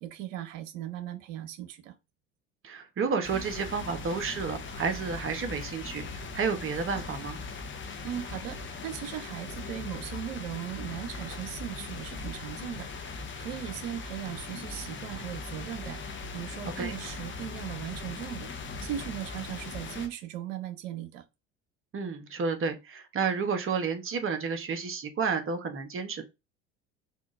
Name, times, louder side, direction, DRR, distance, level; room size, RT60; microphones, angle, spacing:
voice 1, 0.0-1.9 8.0-21.2, right 11 dB, 70° right, 0.7 m, -38 dB
voice 2, 2.6-6.0 6.3-7.4 16.7-16.9 21.9-26.2, right 5 dB, 35° right, 1.0 m, -31 dB
sound 1, 3.2-20.1, left 4 dB, 30° left, 0.9 m, -40 dB
3.7 x 2.4 x 2.5 m
hypercardioid pair, 70°, 39 cm